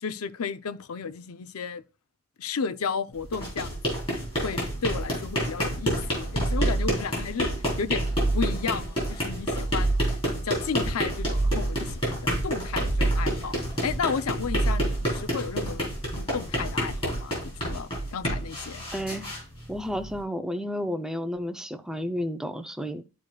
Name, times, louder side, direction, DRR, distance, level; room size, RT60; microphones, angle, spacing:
voice 1, 0.0-1.8 2.4-4.0 4.4-7.5 7.8-13.6 13.8-15.8 16.2-18.8, left 5 dB, 85° left, 0.6 m, -33 dB
sound 1, 3.2-20.2, equal, 25° left, 4.1 m, -30 dB
sound 2, 6.1-7.2 7.7-8.8 9.3-10.4 10.9-12.0 12.5-13.6 14.1-15.2, right 2 dB, 40° right, 0.9 m, -28 dB
voice 2, 18.9-19.3 19.7-23.0, equal, 5° right, 0.4 m, -31 dB
12.0 x 4.8 x 2.3 m
head